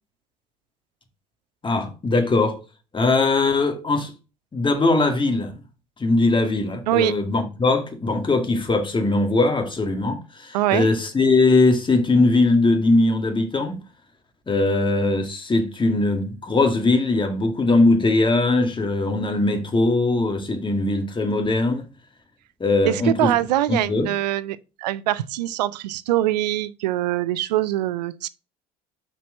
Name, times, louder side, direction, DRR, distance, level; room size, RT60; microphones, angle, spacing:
voice 1, 1.6-2.6 2.9-4.1 4.5-5.5 6.0-13.8 14.5-21.8 22.6-23.3 23.7-24.1, left 2 dB, 25° left, 1.9 m, -20 dB
voice 2, 10.5-10.9 22.8-28.3, right 14 dB, 85° right, 0.4 m, -23 dB
6.0 x 4.4 x 6.1 m
hypercardioid pair, 65°, 21 cm